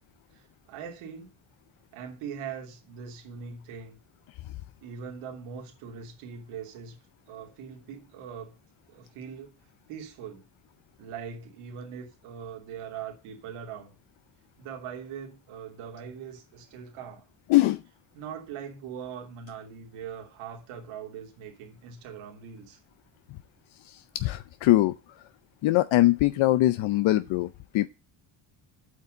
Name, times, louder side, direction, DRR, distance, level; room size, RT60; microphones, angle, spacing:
voice 1, 0.3-1.3 1.9-4.0 4.8-7.0 7.3-8.6 8.9-9.5 9.9-10.4 11.0-13.9 14.6-17.2 18.1-22.8, right 7 dB, 90° right, 3.1 m, -41 dB
voice 2, 17.5-17.8 23.8-24.9 25.6-27.9, left 16 dB, 70° left, 0.7 m, -22 dB
8.2 x 6.0 x 7.8 m
cardioid pair, 110°, 49 cm